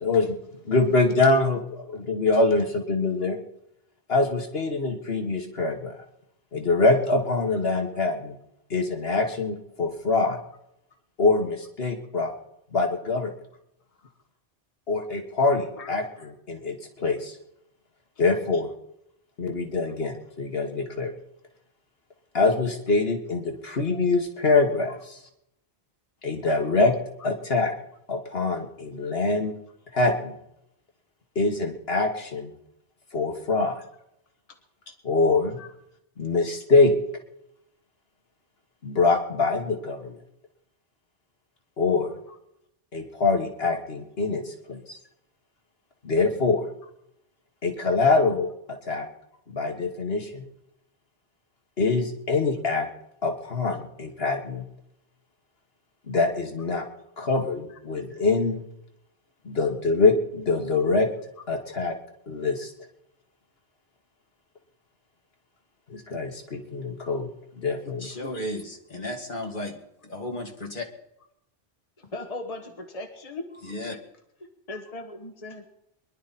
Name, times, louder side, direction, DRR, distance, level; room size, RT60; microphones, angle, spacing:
voice 1, 0.0-0.4 0.7-3.4 4.1-5.9 6.5-8.4 8.7-10.4 11.2-12.3 12.7-13.3 14.9-17.4 18.2-18.7 19.4-21.1 22.3-25.2 26.2-26.9 27.2-27.7 28.1-29.5 29.9-30.3 31.4-32.5 33.1-33.8 35.0-35.6 36.2-36.9 38.8-40.2 41.8-42.1 42.9-45.0 46.0-46.6 47.6-48.5 48.9-49.1 49.5-50.4 51.8-52.9 53.2-54.6 56.1-56.8 57.2-58.6 59.5-61.1 61.5-61.9 62.3-62.7 65.9-67.3 67.6-68.1, left 3 dB, 75° left, 4 dB, 1.9 m, -24 dB
voice 2, 68.0-69.8 70.0-70.9 73.6-74.0, left 1 dB, 50° left, 2 dB, 2.6 m, -34 dB
voice 3, 72.1-73.5 73.9-74.0 74.7-75.6, left 2 dB, 35° left, 4 dB, 1.4 m, -38 dB
23.5 x 11.5 x 4.3 m, 0.79 s
omnidirectional pair, 1.0 m